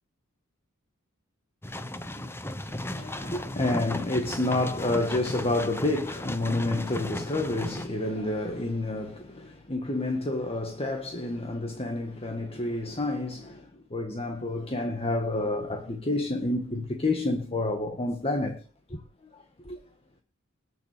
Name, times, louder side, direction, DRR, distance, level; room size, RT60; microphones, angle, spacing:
sound 1, 1.6-7.9, left 1 dB, 10° left, 1.0 m, -35 dB
voice 1, 2.7-18.6 18.9-19.0 19.6-19.8, left 2 dB, 30° left, 1.7 m, -29 dB
20.5 x 7.1 x 5.1 m
head